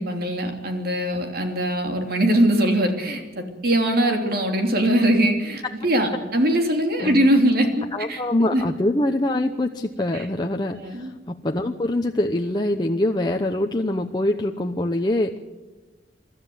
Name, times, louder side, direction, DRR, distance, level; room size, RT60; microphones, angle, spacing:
voice 1, 0.0-8.2 8.5-8.6 10.1-10.3 10.7-11.1, right 1 dB, 60° right, 4 dB, 3.1 m, -21 dB
voice 2, 7.9-15.4, left 1 dB, 25° left, 3 dB, 0.9 m, -24 dB
24.5 x 13.0 x 9.4 m, 1.2 s
head